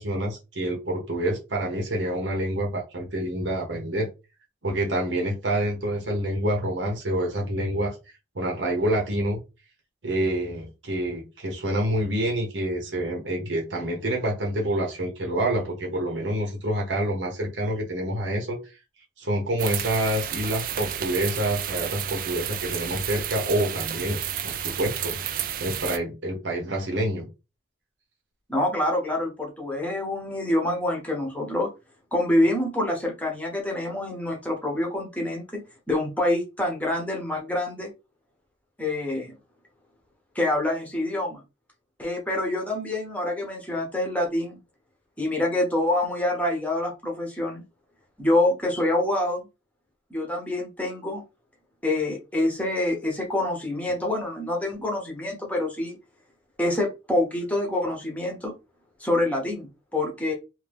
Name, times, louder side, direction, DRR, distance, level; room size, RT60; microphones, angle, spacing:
voice 1, 0.0-4.1 4.6-7.9 8.3-9.4 10.0-18.8 19.2-27.3, right 1 dB, 85° right, 0 dB, 1.0 m, -27 dB
sound 1, 19.6-26.0, right 10 dB, 50° right, 0.3 m, -31 dB
voice 2, 28.5-31.7 32.1-37.9 38.8-39.4 40.3-41.4 42.0-44.6 45.2-47.6 48.2-49.5 50.1-51.2 51.8-56.0 56.6-58.5 59.0-60.3, left 1 dB, 10° left, 0 dB, 0.9 m, -26 dB
2.7 x 2.7 x 3.4 m, 0.28 s
head